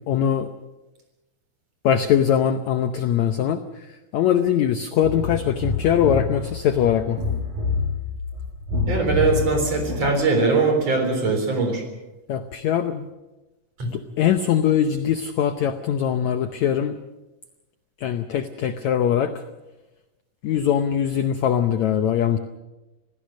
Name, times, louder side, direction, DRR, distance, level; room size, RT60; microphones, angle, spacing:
voice 1, 0.1-0.5 1.8-3.6 4.1-7.2 12.3-13.1 13.9-16.9 18.0-19.3 20.4-22.4, left 9 dB, 75° left, 9 dB, 1.7 m, -21 dB
sound 1, 5.0-10.1, left 4 dB, 65° right, 9.6 m, -27 dB
voice 2, 8.8-11.8 13.8-13.9, right 3 dB, 40° right, 5 dB, 4.7 m, -21 dB
27.0 x 17.0 x 6.5 m, 1.0 s
omnidirectional pair, 4.3 m